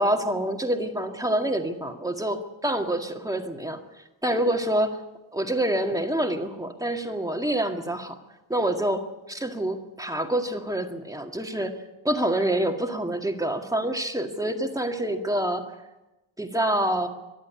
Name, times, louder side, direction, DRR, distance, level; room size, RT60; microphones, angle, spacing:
voice 1, 0.0-3.8 4.2-5.0 5.3-8.2 8.5-11.8 12.0-15.7 16.4-17.1, right 1 dB, 5° right, 4 dB, 2.0 m, -26 dB
25.0 x 11.0 x 9.5 m, 1.0 s
wide cardioid pair, 120°, 46 cm